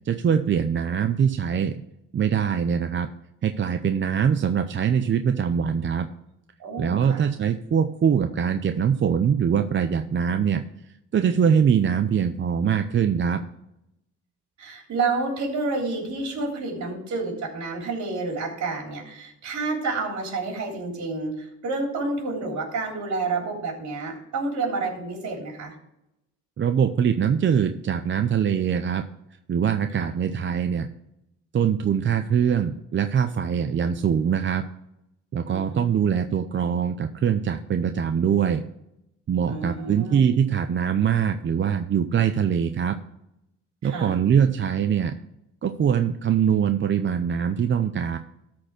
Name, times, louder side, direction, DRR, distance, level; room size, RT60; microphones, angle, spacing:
voice 1, 0.1-1.7 2.1-3.1 3.4-6.1 6.8-10.6 11.1-13.4 26.6-29.0 29.5-30.9 31.5-34.6 35.3-38.6 39.3-43.0 43.8-45.2 45.6-48.2, right 7 dB, 40° right, 8 dB, 0.6 m, -23 dB
voice 2, 6.6-7.2 14.6-25.8 30.0-30.1 35.5-36.3 39.5-40.3 43.8-44.2, right 3 dB, 65° right, 0 dB, 3.4 m, -29 dB
13.0 x 4.4 x 6.0 m, 0.84 s
cardioid pair, 90°, 30 cm